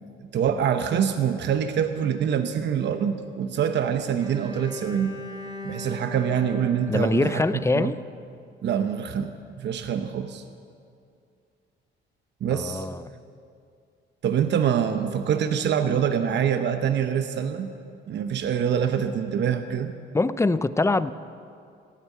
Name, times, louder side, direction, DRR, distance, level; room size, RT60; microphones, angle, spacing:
voice 1, 0.2-5.2 5.6-7.4 7.7-7.9 8.6-9.3 9.6-10.4 12.4-12.9 14.2-17.7 18.1-19.9, right 8 dB, 60° right, 8 dB, 0.9 m, -25 dB
Bowed string instrument, 4.2-8.3, left 2 dB, 20° right, 3.4 m, -40 dB
voice 2, 6.9-8.0 12.5-13.0 20.1-21.1, left 3 dB, 15° left, 14 dB, 0.6 m, -23 dB
16.5 x 9.4 x 9.5 m, 2.4 s
cardioid pair, 90°, 20 cm